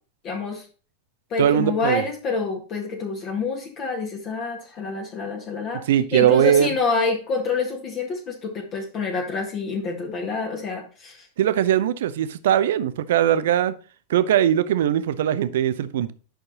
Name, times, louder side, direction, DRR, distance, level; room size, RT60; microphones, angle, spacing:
voice 1, 0.2-0.6 1.3-5.8 6.1-11.3, left 4 dB, 35° left, 1.8 m, -27 dB
voice 2, 1.4-2.0 5.9-6.7 11.4-13.7 14.1-16.1, right 10 dB, 55° right, 0.7 m, -20 dB
11.5 x 6.3 x 2.9 m
figure-of-eight pair, 90°, 0 cm